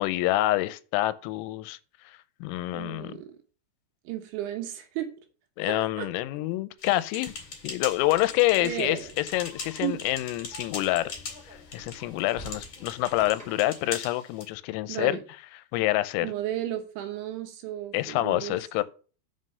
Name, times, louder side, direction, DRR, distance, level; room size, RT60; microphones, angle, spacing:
voice 1, 0.0-1.8 2.4-3.2 5.6-7.3 7.6-11.1 11.7-15.2 15.5-16.3 17.9-18.8, left 17 dB, 90° left, 3.3 m, -27 dB
voice 2, 2.7-3.3 4.1-5.1 5.6-6.1 8.6-9.1 9.8-10.0 14.9-15.2 16.2-18.8, right 12 dB, 75° right, 3.2 m, -34 dB
sound 1, 6.8-14.5, left 4 dB, 50° left, 1.8 m, -41 dB
sound 2, 7.3-13.8, equal, 5° right, 1.4 m, -50 dB
7.5 x 5.6 x 6.6 m
omnidirectional pair, 5.9 m